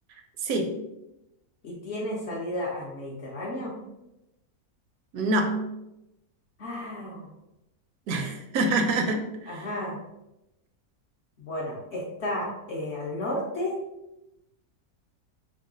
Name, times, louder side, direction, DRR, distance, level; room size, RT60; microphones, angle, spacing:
voice 1, 0.4-0.7 5.1-5.6 8.1-9.7, right 2 dB, 75° right, 4 dB, 1.0 m, -26 dB
voice 2, 1.6-3.7 6.6-7.3 9.5-10.0 11.4-13.8, left 1 dB, 60° left, -3 dB, 0.7 m, -33 dB
3.0 x 2.3 x 3.6 m, 0.91 s
omnidirectional pair, 1.6 m